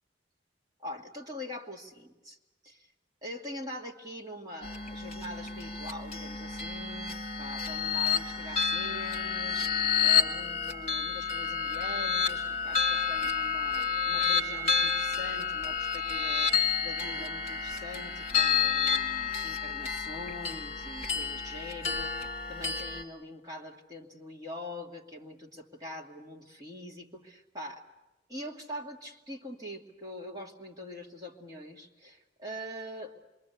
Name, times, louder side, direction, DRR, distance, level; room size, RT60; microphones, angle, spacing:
voice 1, 0.8-2.4 2.6-2.9 3.2-9.7 10.0-16.5 16.8-27.8 28.3-33.1, left 1 dB, 20° right, -1 dB, 2.3 m, -43 dB
sound 1, 4.6-23.0, left 6 dB, 35° left, 2.2 m, -30 dB
27.0 x 22.5 x 8.2 m, 1.1 s
head